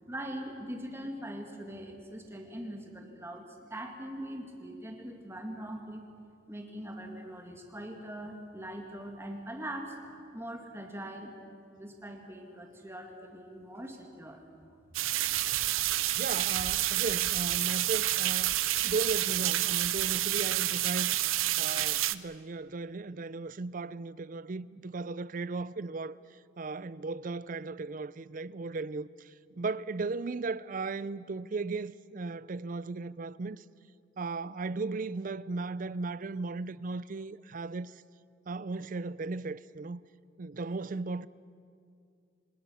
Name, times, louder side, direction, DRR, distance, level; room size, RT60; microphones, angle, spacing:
voice 1, 0.1-6.0 6.5-10.0 10.3-11.3 11.8-14.4, right 1 dB, 10° right, 2.2 m, -42 dB
sound 1, 14.9-22.1, right 14 dB, 85° right, 0.7 m, -29 dB
voice 2, 16.2-18.5 18.8-21.2 21.6-26.2 26.6-33.6 34.2-37.9 38.5-40.0 40.4-41.3, right 3 dB, 40° right, 0.4 m, -36 dB
26.0 x 19.5 x 7.1 m
head